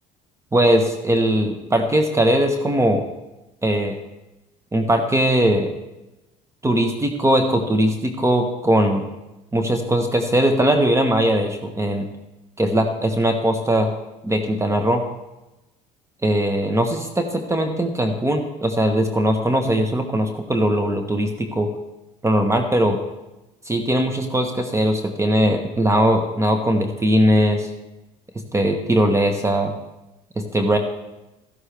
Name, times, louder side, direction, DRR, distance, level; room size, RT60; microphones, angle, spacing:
voice 1, 0.5-3.0 3.6-3.9 4.7-5.8 6.6-9.0 9.5-12.1 12.6-13.9 14.2-15.0 16.2-21.7 22.2-23.0 23.7-27.7 28.5-29.7 30.4-30.8, right 1 dB, 15° right, 5 dB, 1.1 m, -20 dB
12.5 x 11.5 x 3.4 m, 0.99 s
hypercardioid pair, 70°, 17 cm